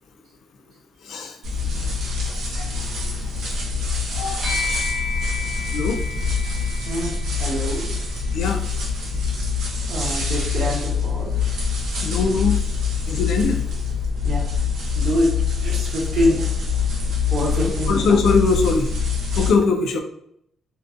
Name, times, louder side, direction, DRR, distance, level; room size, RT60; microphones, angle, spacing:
sound 1, 1.4-19.5, left 5 dB, 90° right, 0.9 m, -24 dB
voice 1, 4.1-4.5 5.7-6.0 8.3-8.6 12.0-12.6 13.1-13.6 17.9-18.9 19.4-20.0, left 4 dB, 75° left, 4 dB, 0.3 m, -21 dB
sound 2, 4.4-14.0, left 4 dB, 10° right, 1.0 m, -35 dB
voice 2, 7.4-7.9 9.9-11.3 14.2-14.5 14.8-15.3 15.6-16.5 17.3-18.0, equal, 65° right, -2 dB, 1.0 m, -24 dB
2.5 x 2.2 x 2.4 m, 0.72 s
cardioid pair, 95°, 0 cm